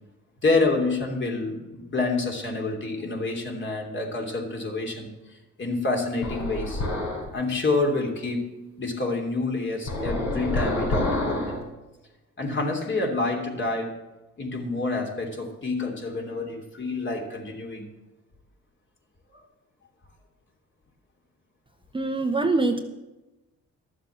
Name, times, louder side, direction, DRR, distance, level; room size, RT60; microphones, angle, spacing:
voice 1, 0.4-6.8 7.3-8.5 8.8-11.6 12.4-13.9 14.4-17.9 19.3-19.4, left 3 dB, 40° left, 1 dB, 3.1 m, -28 dB
sound 1, 6.2-7.3 9.9-11.6, left 2 dB, 70° left, 5.5 m, -27 dB
voice 2, 21.9-22.8, right 3 dB, 15° right, 5 dB, 0.9 m, -23 dB
12.5 x 7.3 x 7.3 m, 1.0 s
cardioid pair, 90°, 30 cm